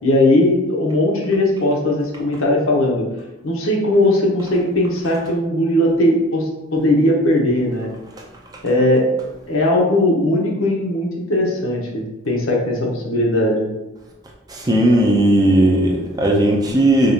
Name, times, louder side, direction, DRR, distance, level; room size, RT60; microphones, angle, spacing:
voice 1, 0.0-3.1 3.4-7.9 8.6-9.1 9.5-13.7, left 1 dB, 75° left, -1 dB, 0.8 m, -18 dB
voice 2, 14.5-17.1, right 1 dB, 20° right, -1 dB, 0.4 m, -16 dB
5.1 x 2.4 x 2.7 m, 1.0 s
head